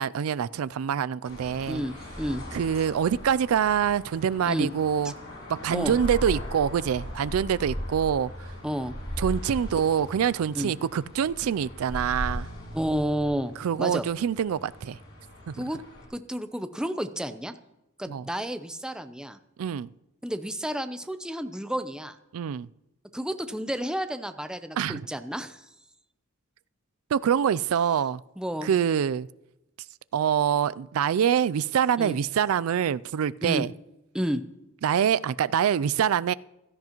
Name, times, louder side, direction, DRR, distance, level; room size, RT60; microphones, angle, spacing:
voice 1, 0.0-1.8 2.5-5.1 5.5-8.5 9.2-12.5 13.6-15.0 15.5-15.6 18.1-18.2 19.6-19.9 22.3-22.7 24.8-25.0 27.1-28.2 28.6-29.3 30.1-33.7 34.8-36.3, right 8 dB, 75° right, 0.4 m, -25 dB
sound 1, 1.2-16.1, equal, 70° left, 5.4 m, -38 dB
voice 2, 1.7-2.4 4.4-4.7 5.7-6.0 8.6-8.9 10.6-10.7 12.7-14.1 15.6-15.8 16.1-17.5 18.0-19.4 20.2-22.2 23.1-25.6 28.4-28.7 32.0-32.2 33.4-33.6 34.1-34.4, equal, 5° right, 0.6 m, -31 dB
16.0 x 13.0 x 3.0 m
head